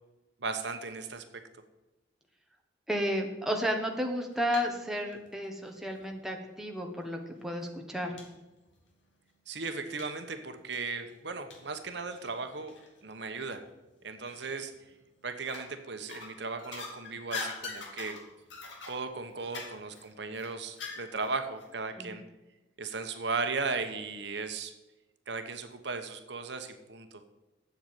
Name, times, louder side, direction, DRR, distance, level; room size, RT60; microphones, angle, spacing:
voice 1, 0.4-1.2 9.5-12.7 13.0-13.6 14.0-14.7 15.2-18.2 18.9-22.2 22.8-24.7 25.3-27.2, right 4 dB, 65° right, 7 dB, 1.1 m, -36 dB
voice 2, 2.9-8.2 22.0-22.2, equal, ahead, 2 dB, 1.3 m, -32 dB
sound 1, 4.0-4.8 5.1-6.1 6.9-7.0 7.4-7.5 8.2-8.3 8.7-8.8 10.0-10.2 10.7-13.0 13.3-13.5 14.2-14.8 15.3-15.7 16.1-21.3 21.6-21.7, left 4 dB, 75° left, 2.8 m, -43 dB
8.1 x 8.0 x 9.0 m, 1.1 s
head